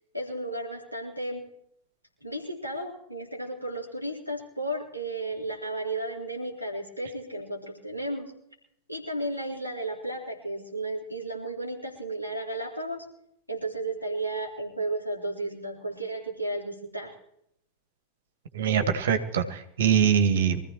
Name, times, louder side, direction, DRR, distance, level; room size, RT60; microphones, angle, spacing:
voice 1, 0.1-1.4 2.2-8.3 8.9-13.0 13.5-17.1, right 1 dB, 90° left, -2 dB, 3.9 m, -33 dB
voice 2, 18.5-20.6, right 8 dB, 60° right, 8 dB, 1.7 m, -23 dB
24.0 x 15.0 x 3.1 m, 0.73 s
figure-of-eight pair, 90°, 0 cm